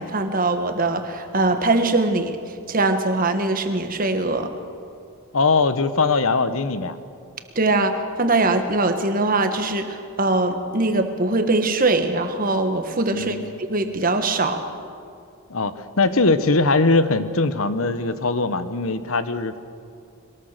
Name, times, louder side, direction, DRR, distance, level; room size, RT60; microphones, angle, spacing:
voice 1, 0.0-2.4 2.7-4.5 7.5-14.6, right 2 dB, 40° right, 7 dB, 1.5 m, -22 dB
voice 2, 5.3-7.0 13.1-13.6 15.5-19.6, left 3 dB, 70° left, 12 dB, 1.1 m, -21 dB
22.5 x 19.0 x 6.6 m, 2.4 s
head